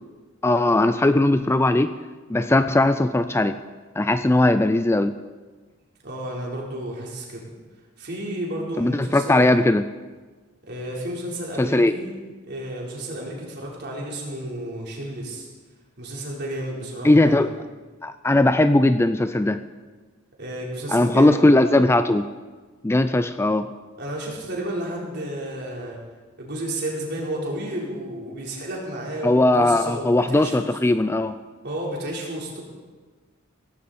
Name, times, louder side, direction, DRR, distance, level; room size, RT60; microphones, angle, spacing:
voice 1, 0.4-2.0 2.3-3.6 4.0-5.1 8.8-9.9 11.6-12.0 17.0-17.5 18.0-19.6 20.9-22.2 22.8-23.7 29.2-31.3, left 2 dB, 10° left, 11 dB, 0.4 m, -19 dB
voice 2, 6.0-7.4 8.0-9.5 10.7-12.1 12.5-15.5 16.0-17.5 20.4-21.8 24.0-26.0 26.4-30.7 31.6-32.6, right 1 dB, 55° right, -3 dB, 4.1 m, -32 dB
17.0 x 15.5 x 4.3 m, 1.3 s
head